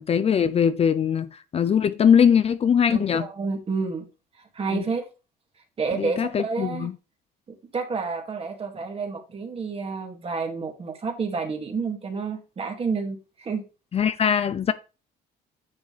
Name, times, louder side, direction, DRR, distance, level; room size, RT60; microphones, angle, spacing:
voice 1, 0.0-3.3 4.7-4.8 5.9-7.0 13.9-14.7, left 7 dB, 35° left, 0.6 m, -21 dB
voice 2, 2.9-4.0 4.5-5.0 5.8-6.9 7.7-13.6, right 4 dB, 35° right, 2.3 m, -29 dB
9.7 x 6.2 x 3.4 m
cardioid pair, 110°, 17 cm